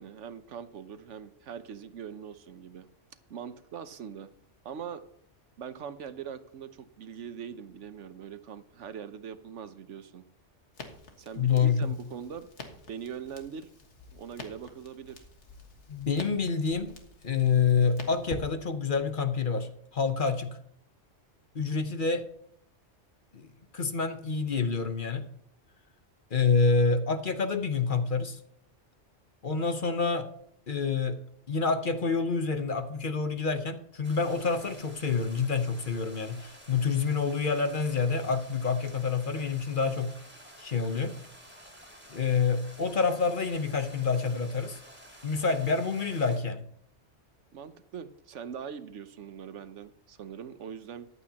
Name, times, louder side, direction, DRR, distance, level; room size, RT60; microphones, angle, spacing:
voice 1, 0.0-2.9 3.3-4.3 4.6-5.0 5.6-10.2 11.2-12.5 12.9-13.7 14.1-15.2 47.5-51.1, right 7 dB, 75° right, 12 dB, 1.1 m, -42 dB
Crackle, 10.7-19.0, left 3 dB, 70° left, 1.9 m, -48 dB
voice 2, 11.4-11.9 15.9-16.9 17.2-20.6 21.5-22.2 23.3-23.5 23.7-25.3 26.3-28.4 29.4-30.3 30.7-31.2 31.5-40.1 40.6-41.1 42.1-44.8 45.2-46.6, left 5 dB, 45° left, 8 dB, 1.1 m, -27 dB
sound 1, 34.0-46.4, equal, 10° right, 3.1 m, -51 dB
14.5 x 11.0 x 2.9 m, 0.68 s
omnidirectional pair, 1.3 m